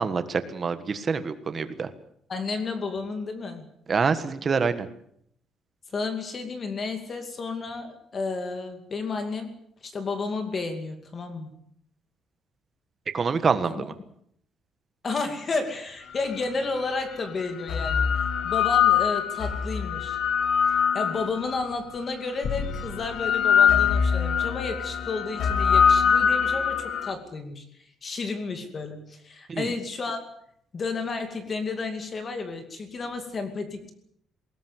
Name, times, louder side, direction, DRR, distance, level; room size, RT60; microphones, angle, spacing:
voice 1, 0.0-1.9 3.9-4.9 13.1-13.9 29.5-29.7, right 5 dB, 25° right, 11 dB, 1.6 m, -26 dB
voice 2, 2.3-3.7 5.9-9.5 9.8-11.5 13.7-13.8 15.0-20.2 20.7-30.2 30.7-33.9, left 3 dB, 30° left, 7 dB, 2.5 m, -32 dB
sound 1, 16.4-16.5 17.4-21.7 22.4-27.1, left 7 dB, 50° left, 1.8 m, -23 dB
21.5 x 18.5 x 8.2 m, 0.69 s
cardioid pair, 175°, 0 cm